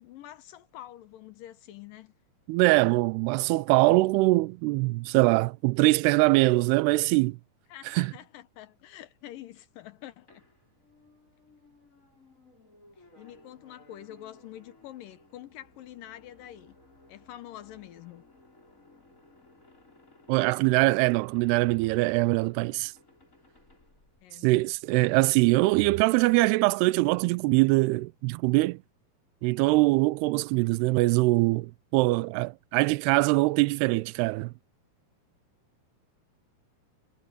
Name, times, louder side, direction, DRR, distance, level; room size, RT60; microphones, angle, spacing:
voice 1, 0.0-2.1 7.7-10.4 13.2-16.8 17.1-18.2 24.2-24.6, left 13 dB, 70° left, 2.3 m, -46 dB
voice 2, 2.5-7.4 7.9-8.1 20.3-22.9 24.4-28.8 29.4-34.5, right 22 dB, 85° right, 2.6 m, -23 dB
sound 1, 10.3-24.8, left 2 dB, 20° left, 6.4 m, -59 dB
omnidirectional pair, 4.7 m